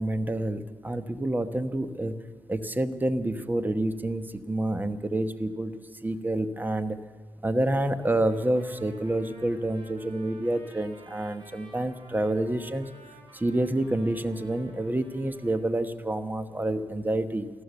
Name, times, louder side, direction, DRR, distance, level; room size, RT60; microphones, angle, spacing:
voice 1, 0.0-2.2 2.5-7.0 7.4-12.9 13.3-17.5, right 1 dB, 20° right, 11 dB, 1.1 m, -28 dB
Trumpet, 8.0-15.7, right 2 dB, 65° right, 3.1 m, -53 dB
14.0 x 13.0 x 8.1 m, 1.5 s
supercardioid pair, 45°, 9 cm